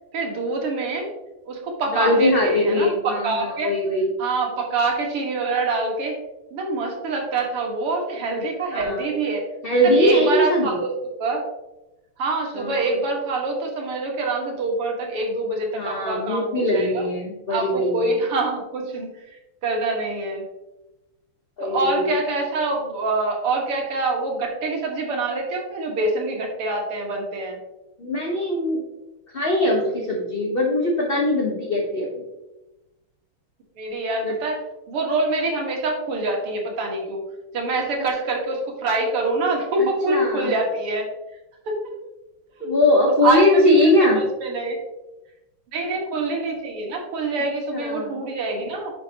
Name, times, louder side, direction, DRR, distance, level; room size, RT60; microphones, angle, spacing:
voice 1, 0.1-1.1 1.5-3.7 4.2-6.2 6.5-9.4 9.8-10.9 11.2-11.5 12.2-17.1 17.5-20.4 21.6-27.6 33.8-37.2 37.5-41.1 41.7-42.0 42.6-42.7 43.2-43.7 44.0-44.8 45.7-48.9, right 3 dB, 85° right, 1 dB, 2.7 m, -25 dB
voice 2, 1.9-4.1 8.7-9.0 9.6-10.8 12.6-12.8 15.7-18.1 21.6-22.1 28.0-28.8 29.3-32.2 34.2-34.3 39.8-40.5 42.7-44.2 47.7-48.1, left 1 dB, 35° left, -1 dB, 1.0 m, -21 dB
10.0 x 6.2 x 2.9 m, 0.98 s
omnidirectional pair, 2.4 m